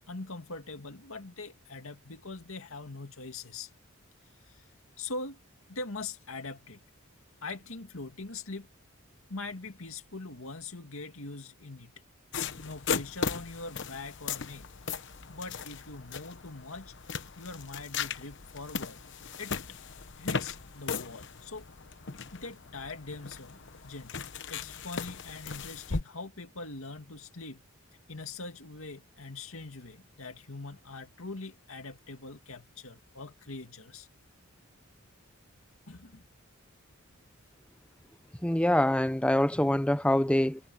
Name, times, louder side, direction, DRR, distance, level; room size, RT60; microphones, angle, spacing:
voice 1, 0.1-3.7 4.5-4.7 5.0-5.4 5.7-6.8 7.4-8.7 9.3-11.9 12.6-14.7 15.3-16.9 17.4-19.0 19.4-19.5 20.2-21.6 22.3-23.6 23.8-27.6 28.1-34.1 35.9-36.2, left 3 dB, 75° left, 2.3 m, -42 dB
sound 1, 12.3-26.0, left 5 dB, 60° left, 1.1 m, -37 dB
voice 2, 38.4-40.6, left 1 dB, 5° left, 0.6 m, -25 dB
head